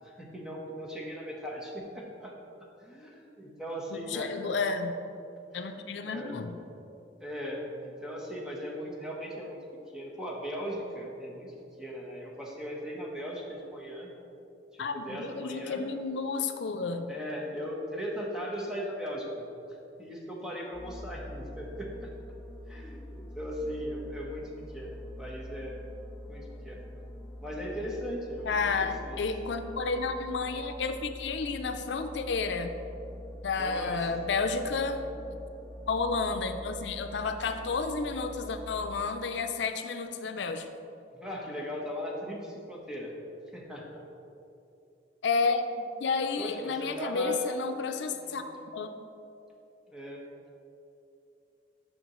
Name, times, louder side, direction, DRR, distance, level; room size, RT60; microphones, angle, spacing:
voice 1, 0.0-2.3 2.8-4.3 5.5-5.8 6.0-6.4 7.2-9.6 9.9-14.1 14.7-15.8 17.1-22.1 22.7-25.8 26.3-26.8 27.4-29.2 33.6-34.0 34.5-35.1 41.1-43.1 43.5-44.0 46.4-47.4 48.1-48.4 49.9-50.2, equal, 5° right, -3 dB, 1.0 m, -38 dB
voice 2, 3.9-4.9 5.5-6.6 14.8-17.1 28.5-32.7 33.4-35.0 35.9-40.7 45.2-48.4 48.7-48.9, left 4 dB, 90° left, 7 dB, 0.5 m, -31 dB
sound 1, 20.7-39.0, left 1 dB, 15° left, 0.4 m, -44 dB
9.2 x 6.0 x 3.0 m, 2.7 s
head